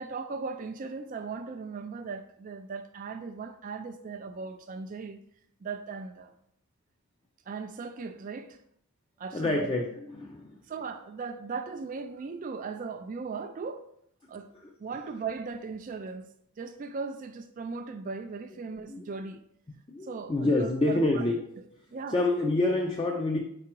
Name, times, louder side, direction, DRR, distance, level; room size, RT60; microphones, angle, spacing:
voice 1, 0.0-5.2 5.6-6.3 7.5-8.6 9.2-9.7 10.7-13.8 14.3-14.5 14.8-16.3 16.6-19.4 20.0-21.3 21.9-22.2, right 4 dB, 35° right, 0.3 m, -38 dB
voice 2, 9.3-10.5 18.9-19.0 19.9-21.4 22.1-23.4, left 2 dB, 20° left, 0.5 m, -27 dB
4.8 x 4.7 x 4.5 m
head